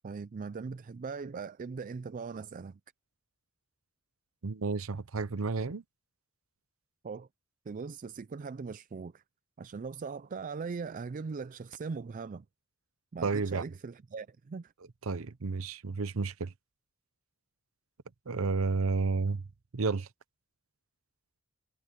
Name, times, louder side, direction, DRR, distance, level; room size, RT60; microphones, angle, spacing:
voice 1, 0.0-2.8 7.0-7.3 7.7-9.2 9.6-12.5 13.1-14.7, right 5 dB, 40° right, 0.4 m, -40 dB
voice 2, 4.4-5.8 13.2-13.6 15.1-16.5 18.3-19.4 19.7-20.1, right 4 dB, 70° right, 0.8 m, -31 dB
head